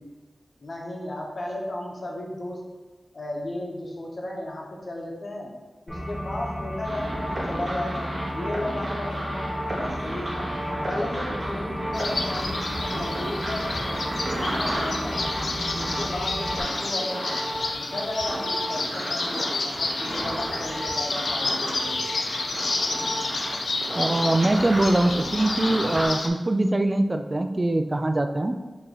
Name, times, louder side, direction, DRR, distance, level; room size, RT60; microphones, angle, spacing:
voice 1, 0.6-2.6 3.1-5.5 5.9-8.1 8.3-10.5 10.9-14.0 14.3-15.3 15.7-17.4 17.8-22.2, left 1 dB, 65° left, -2 dB, 1.0 m, -34 dB
sound 1, 5.9-16.6, equal, ahead, 1.5 m, -34 dB
sound 2, 6.8-26.1, right 1 dB, 60° right, 1.0 m, -33 dB
sound 3, 11.9-26.3, left 3 dB, 85° left, 0.4 m, -30 dB
voice 2, 23.9-28.5, right 1 dB, 40° right, 7 dB, 0.4 m, -23 dB
4.5 x 3.1 x 3.8 m, 1.3 s
cardioid pair, 45°, 0 cm